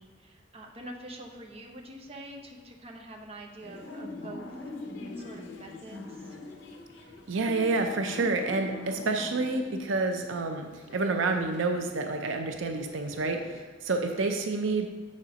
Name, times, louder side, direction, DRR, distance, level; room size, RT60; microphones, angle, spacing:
voice 1, 0.0-4.5 5.2-6.4, right 1 dB, 30° right, 0 dB, 0.9 m, -45 dB
sound 1, 3.6-13.6, left 2 dB, 70° left, 0.8 m, -43 dB
voice 2, 7.3-14.9, right 3 dB, 80° right, 5 dB, 0.6 m, -29 dB
7.1 x 4.3 x 5.0 m, 1.3 s
head